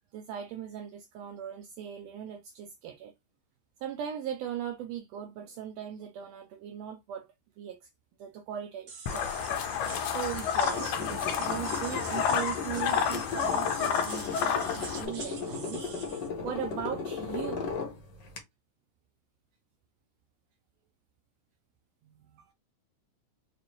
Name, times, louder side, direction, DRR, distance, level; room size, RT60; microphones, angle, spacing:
voice 1, 0.1-3.1 3.8-7.3 7.6-7.9 8.2-9.3 10.1-15.8 16.4-17.7 22.0-22.5, right 9 dB, 80° right, 1.6 m, -39 dB
sound 1, 8.9-16.3, right 5 dB, 55° right, 2.1 m, -43 dB
sound 2, 9.1-15.1, left 8 dB, 80° left, 1.7 m, -30 dB
sound 3, 10.6-18.4, left 5 dB, 60° left, 1.1 m, -37 dB
5.3 x 2.5 x 3.0 m
omnidirectional pair, 3.3 m